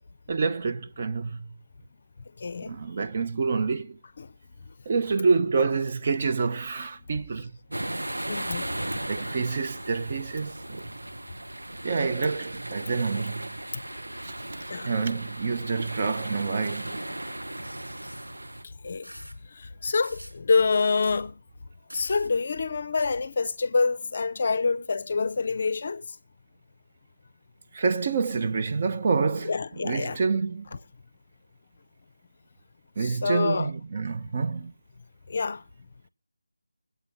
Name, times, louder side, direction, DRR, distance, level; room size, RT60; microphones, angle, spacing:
voice 1, 0.3-1.4 2.6-4.0 4.9-7.5 9.1-10.9 11.8-13.5 14.2-14.3 14.8-17.0 27.7-29.5 29.8-30.8 33.0-34.7, right 4 dB, 30° right, 0.7 m, -27 dB
voice 2, 2.4-2.8 4.2-4.3 8.3-8.7 13.9-14.0 14.7-14.9 18.6-19.1 19.5-21.4 21.9-26.0 29.4-30.2 33.0-33.7 35.3-35.6, left 4 dB, 35° left, 0.6 m, -27 dB
sound 1, 7.7-18.6, right 1 dB, 70° right, 1.0 m, -36 dB
sound 2, 17.6-18.3 19.0-19.4 20.0-20.4 21.0-21.2 21.9-22.3 23.0-23.1, equal, 85° right, 6.8 m, -46 dB
20.0 x 8.3 x 5.5 m
figure-of-eight pair, 160°, 0 cm